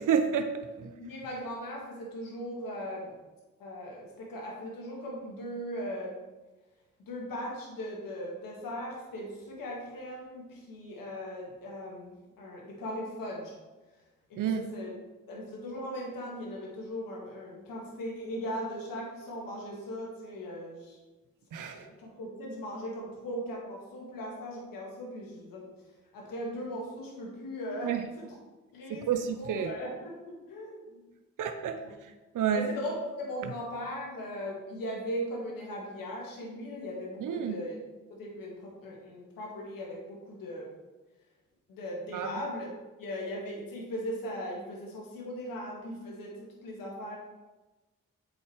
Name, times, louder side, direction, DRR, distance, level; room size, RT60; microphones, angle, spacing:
voice 1, 0.0-0.9 14.4-14.6 21.5-21.8 27.8-28.0 29.1-29.7 31.4-31.8 32.3-32.7 37.2-37.6 42.1-42.3, right 7 dB, 65° right, 7 dB, 0.7 m, -29 dB
voice 2, 0.8-3.1 3.6-6.2 7.0-13.5 14.3-14.9 15.3-21.0 21.7-25.7 26.1-28.4 28.7-29.1 29.4-31.0 31.8-31.9 32.5-37.7 38.1-40.7 41.7-42.7 43.0-47.2, equal, 85° left, -2 dB, 1.8 m, -38 dB
8.2 x 6.2 x 3.2 m, 1.2 s
supercardioid pair, 40°, 33 cm